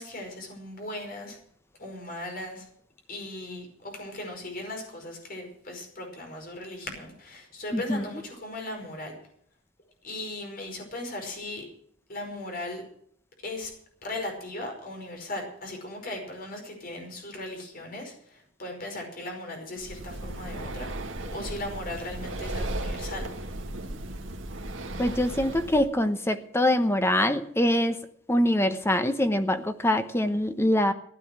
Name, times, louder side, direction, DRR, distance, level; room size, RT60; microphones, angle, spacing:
voice 1, 0.0-1.4 1.8-2.6 3.1-9.1 10.0-11.6 12.1-12.8 13.4-13.7 14.0-20.9 21.3-23.3, left 1 dB, 45° left, 3 dB, 5.0 m, -37 dB
voice 2, 7.7-8.0 25.0-28.0 28.3-30.9, left 1 dB, 10° left, 9 dB, 0.9 m, -24 dB
Breathing, 19.8-25.9, right 1 dB, 65° right, 1.9 m, -35 dB
15.5 x 11.0 x 6.2 m, 0.66 s
head